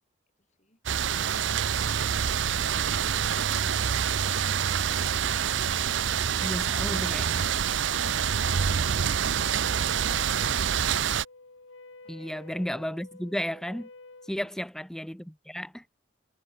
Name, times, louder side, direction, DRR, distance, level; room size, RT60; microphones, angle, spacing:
voice 1, 0.4-0.8 12.0-12.4 14.2-14.7, left 1 dB, 35° left, 7.3 m, -63 dB
sound 1, 0.9-11.3, right 8 dB, 70° right, 0.6 m, -26 dB
voice 2, 6.4-7.4 12.1-13.9 14.3-15.9, equal, 5° left, 0.4 m, -33 dB
Wind instrument woodwind instrument, 7.7-14.4, left 3 dB, 80° left, 2.1 m, -49 dB
head